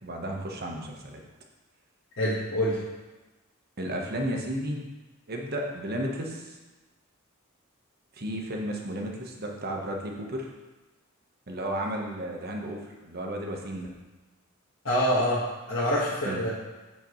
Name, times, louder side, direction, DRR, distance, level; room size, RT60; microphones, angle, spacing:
voice 1, 0.0-1.2 3.8-4.8 5.3-6.6 8.2-10.5 11.5-13.9 16.2-16.4, right 1 dB, 50° right, 1 dB, 1.1 m, -33 dB
voice 2, 2.2-2.8 14.8-15.4 15.7-16.5, equal, 65° left, -9 dB, 1.5 m, -25 dB
8.0 x 7.2 x 3.1 m, 1.2 s
head